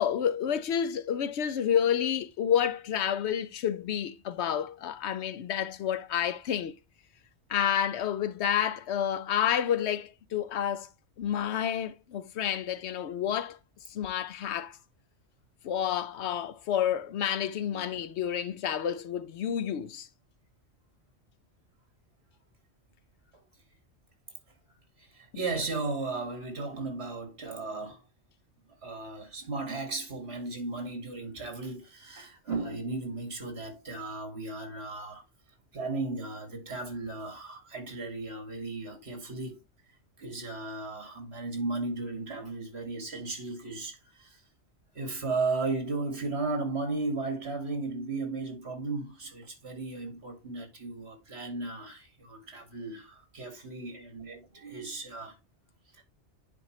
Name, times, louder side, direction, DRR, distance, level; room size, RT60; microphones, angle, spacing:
voice 1, 0.0-6.7 7.5-10.9 11.2-13.6 13.9-14.8 15.6-20.1, left 9 dB, 75° left, 0.9 m, -29 dB
voice 2, 25.0-28.0 28.8-35.2 35.7-39.6 40.2-44.4 44.9-55.4 55.9-56.0, right 3 dB, 65° right, 2.4 m, -35 dB
10.0 x 4.4 x 3.1 m
omnidirectional pair, 1.2 m